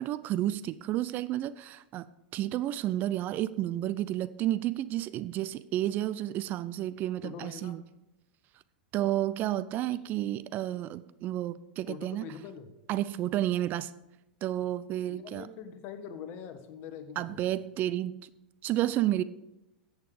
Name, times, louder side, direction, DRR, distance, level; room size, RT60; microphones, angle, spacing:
voice 1, 0.0-7.8 8.9-12.2 12.9-13.9 14.4-15.5 17.2-18.3 18.6-19.2, right 13 dB, 40° right, 15 dB, 0.5 m, -31 dB
voice 2, 7.2-7.8 9.9-10.0 11.9-12.7 15.1-17.4, left 7 dB, 45° left, 9 dB, 1.5 m, -43 dB
14.5 x 8.2 x 5.0 m, 0.94 s
figure-of-eight pair, 90°, 5 cm